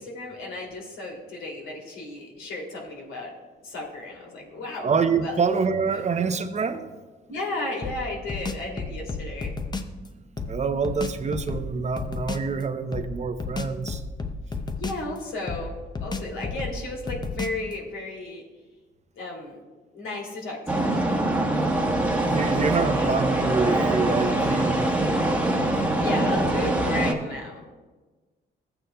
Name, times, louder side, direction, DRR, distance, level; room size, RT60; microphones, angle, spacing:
voice 1, 0.0-3.3 3.6-4.9 5.2-5.3 7.3-9.5 14.8-18.4 19.1-19.6 19.9-21.0 22.8-23.2 25.9-27.7, left 2 dB, 85° left, -1 dB, 2.7 m, -34 dB
voice 2, 4.8-6.9 10.4-14.0 22.2-24.9, right 5 dB, 35° right, 8 dB, 0.7 m, -26 dB
sound 1, 7.8-10.0 10.4-12.5 12.9-15.2 15.5-17.7, left 3 dB, 20° left, 0.7 m, -33 dB
sound 2, 20.7-27.1, right 1 dB, 5° right, 1.2 m, -23 dB
15.0 x 8.7 x 2.3 m, 1.3 s
cardioid pair, 90°, 20 cm